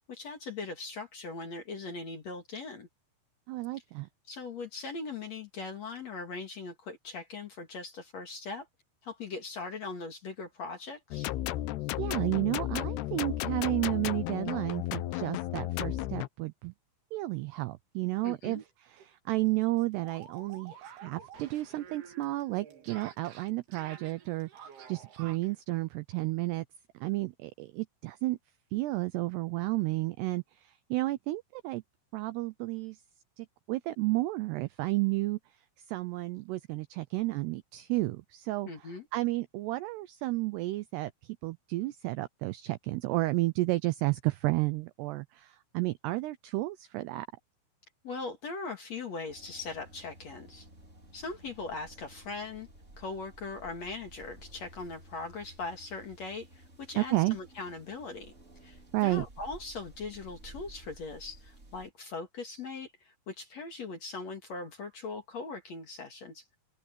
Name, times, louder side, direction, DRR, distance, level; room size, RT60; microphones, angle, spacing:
voice 1, 0.1-2.9 4.3-8.7 9.0-11.3 18.2-18.6 38.7-39.1 48.0-50.7 51.1-52.7 53.0-58.3 58.6-66.4, left 4 dB, 45° left, 2.4 m, -40 dB
voice 2, 3.5-4.1 12.0-16.7 17.1-18.6 18.9-26.6 26.9-28.4 28.7-31.8 32.1-33.0 33.4-35.4 35.9-38.7 39.1-47.3 57.0-57.4 58.9-59.3, right 20 dB, 85° right, 2.4 m, -32 dB
sound 1, 11.1-16.3, left 15 dB, 75° left, 2.5 m, -33 dB
sound 2, 18.6-18.7 19.0-19.1 19.4-25.5, right 7 dB, 60° right, 4.3 m, -50 dB
sound 3, 49.3-61.9, right 1 dB, 15° right, 3.5 m, -54 dB
omnidirectional pair, 5.5 m